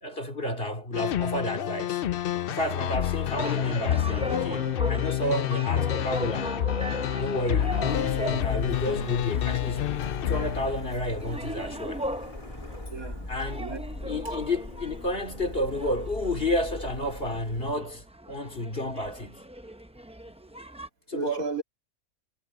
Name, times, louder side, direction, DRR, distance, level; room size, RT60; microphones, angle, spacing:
voice 1, 0.0-2.0 2.5-6.6 7.2-9.9 10.2-12.1 13.3-13.6 14.1-19.4 21.1-21.5, left 1 dB, 40° left, 3.0 m, -31 dB
sound 1, 0.9-11.1, left 11 dB, 65° left, 0.5 m, -28 dB
sound 2, 3.3-20.9, equal, 5° right, 0.5 m, -38 dB
Printer, 7.4-17.8, left 1 dB, 25° left, 2.4 m, -40 dB
voice 2, 12.9-13.3 13.6-14.1 21.1-21.6, right 4 dB, 80° right, 3.0 m, -35 dB
omnidirectional pair, 1.5 m